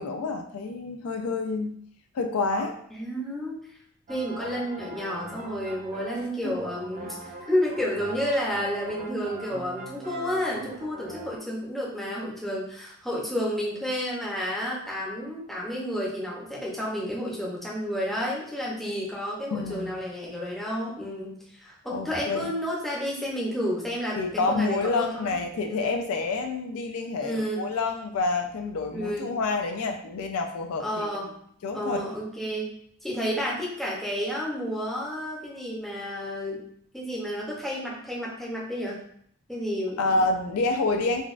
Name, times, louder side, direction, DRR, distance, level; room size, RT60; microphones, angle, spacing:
voice 1, 0.0-1.7 2.1-2.8 6.1-6.6 19.5-20.0 21.9-22.4 24.2-31.1 31.6-32.0 40.0-41.2, left 3 dB, 70° left, 4 dB, 0.4 m, -28 dB
voice 2, 2.9-3.6 4.1-25.4 25.7-25.8 27.2-27.6 28.9-29.3 30.8-31.4 31.7-32.7 33.0-36.6 36.9-39.0 39.5-40.3, equal, ahead, -5 dB, 0.7 m, -31 dB
sound 1, 4.1-11.4, right 1 dB, 35° right, 0.4 m, -41 dB
3.9 x 2.3 x 2.5 m, 0.67 s
head